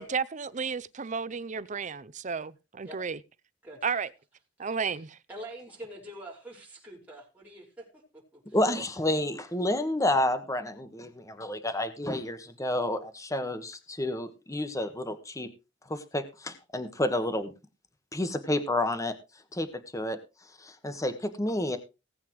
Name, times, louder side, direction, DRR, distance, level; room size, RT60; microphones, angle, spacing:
voice 1, 0.0-3.2 3.8-4.1 4.6-5.2, right 5 dB, 40° right, 0.6 m, -33 dB
voice 2, 5.3-7.9 8.1-8.6, right 1 dB, 10° right, 5.2 m, -45 dB
voice 3, 8.5-15.5 15.9-17.5 18.1-19.1 19.5-19.7 19.9-20.2 20.6-21.8, left 1 dB, 15° left, 1.4 m, -30 dB
19.0 x 8.8 x 3.1 m
head